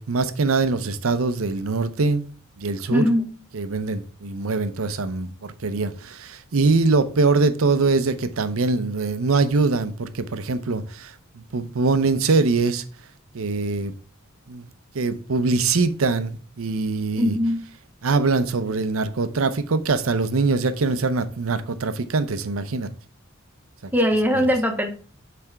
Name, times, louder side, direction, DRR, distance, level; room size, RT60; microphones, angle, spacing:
voice 1, 0.0-2.3 2.6-3.0 3.5-12.8 13.3-13.9 14.5-14.7 14.9-17.4 18.0-22.9, right 3 dB, 75° right, 0.7 m, -23 dB
voice 2, 2.9-3.3 17.2-17.6 23.9-24.9, equal, 10° right, 0.9 m, -20 dB
7.4 x 3.4 x 4.5 m
head